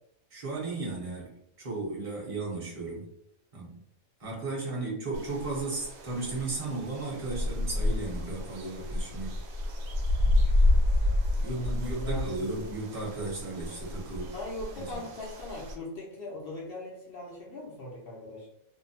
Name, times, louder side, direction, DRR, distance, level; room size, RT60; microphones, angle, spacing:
voice 1, 0.3-1.3 1.6-3.1 3.5-3.8 4.2-9.4 11.4-14.3 14.7-15.0, right 3 dB, 30° right, -4 dB, 0.7 m, -35 dB
sound 1, 5.1-15.7, left 1 dB, 75° right, 1.0 m, -29 dB
voice 2, 11.5-12.3 14.3-18.5, equal, 65° left, -3 dB, 0.6 m, -39 dB
2.6 x 2.1 x 2.7 m, 0.76 s
omnidirectional pair, 1.5 m